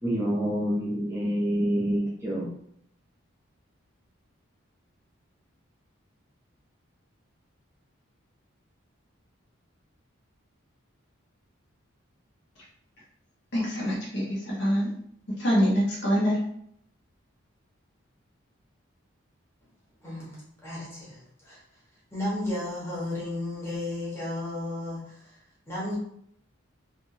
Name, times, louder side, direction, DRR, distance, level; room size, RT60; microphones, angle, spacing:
voice 1, 0.0-2.5, equal, 15° right, 0.6 m, -27 dB
voice 2, 13.5-14.9 15.4-16.4, equal, 60° left, 1.3 m, -25 dB
voice 3, 20.0-21.6 22.1-25.4 25.7-26.0, left 1 dB, 10° left, 1.3 m, -34 dB
3.6 x 2.6 x 2.7 m
head